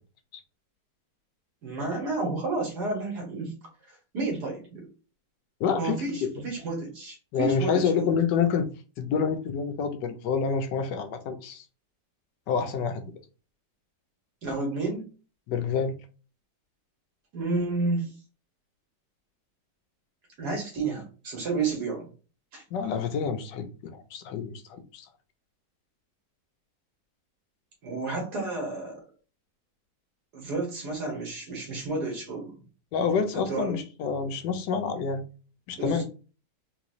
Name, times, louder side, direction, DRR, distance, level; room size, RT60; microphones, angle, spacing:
voice 1, 1.6-3.5 4.1-4.9 5.8-8.1 14.4-15.0 17.3-18.1 20.4-22.1 22.5-22.6 27.8-29.0 30.3-32.6 33.3-33.8 35.8-36.0, right 3 dB, 65° right, 1 dB, 1.9 m, -31 dB
voice 2, 5.6-6.3 7.3-8.7 9.0-11.6 12.5-13.0 15.5-15.9 22.7-25.1 32.9-35.2 35.7-36.0, left 6 dB, 80° left, 7 dB, 1.3 m, -28 dB
3.9 x 3.0 x 2.5 m, 0.35 s
omnidirectional pair, 1.9 m